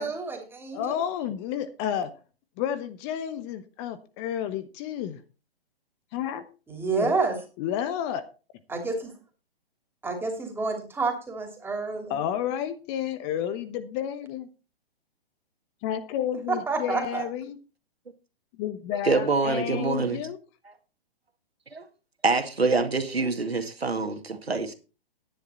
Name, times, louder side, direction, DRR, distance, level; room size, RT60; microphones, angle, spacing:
voice 1, 0.0-0.8 6.7-7.3 8.7-9.1 10.0-12.2 16.5-17.2, right 4 dB, 5° right, 2.9 m, -29 dB
voice 2, 0.7-2.1 2.6-5.2 6.1-6.4 6.8-7.1 7.6-8.2 12.1-14.5 15.8-17.6 18.6-20.4, left 9 dB, 30° left, 1.0 m, -31 dB
voice 3, 18.9-20.2 20.6-20.8 21.7-21.9 22.2-24.7, right 3 dB, 85° right, 2.2 m, -26 dB
10.5 x 10.5 x 4.3 m
figure-of-eight pair, 125°, 30 cm